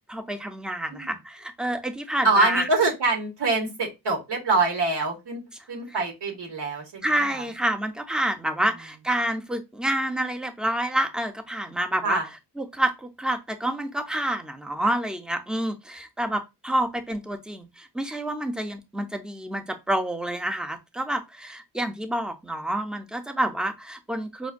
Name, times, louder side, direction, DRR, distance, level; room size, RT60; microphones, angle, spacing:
voice 1, 0.1-2.7 5.9-6.0 7.0-12.2 12.6-24.5, right 1 dB, ahead, 0.5 m, -28 dB
voice 2, 2.2-5.4 5.7-7.4 12.0-12.3, right 3 dB, 80° right, 1.4 m, -25 dB
5.1 x 2.1 x 2.4 m
wide cardioid pair, 90°, 41 cm